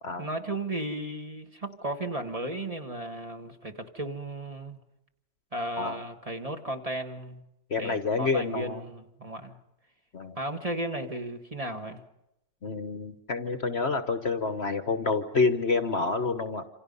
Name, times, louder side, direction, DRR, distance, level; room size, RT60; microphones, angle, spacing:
voice 1, 0.2-4.8 5.5-7.4 7.8-9.6 10.3-12.0, right 1 dB, 25° right, 4 dB, 1.7 m, -35 dB
voice 2, 7.7-8.8 10.1-10.4 12.6-16.7, left 4 dB, 45° left, 8 dB, 1.2 m, -28 dB
28.0 x 27.5 x 5.5 m, 0.86 s
omnidirectional pair, 1.7 m